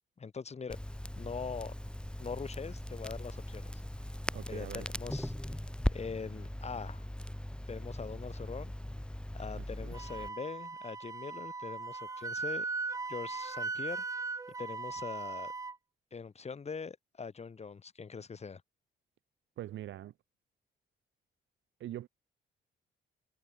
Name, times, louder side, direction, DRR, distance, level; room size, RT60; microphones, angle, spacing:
voice 1, 0.2-0.8 1.2-1.7 2.2-3.7 4.5-5.3 5.9-7.1 7.7-8.7 9.3-12.7 13.1-14.0 14.6-15.5 16.1-18.6, left 5 dB, 35° left, 2.3 m, -42 dB
Crackle, 0.7-10.3, left 1 dB, 5° left, 2.7 m, -39 dB
voice 2, 4.3-4.9 9.6-9.9 19.6-20.1 21.8-22.1, right 13 dB, 80° right, 2.2 m, -43 dB
Wind instrument woodwind instrument, 9.9-15.7, right 4 dB, 15° right, 0.4 m, -38 dB
cardioid pair, 95°, 19 cm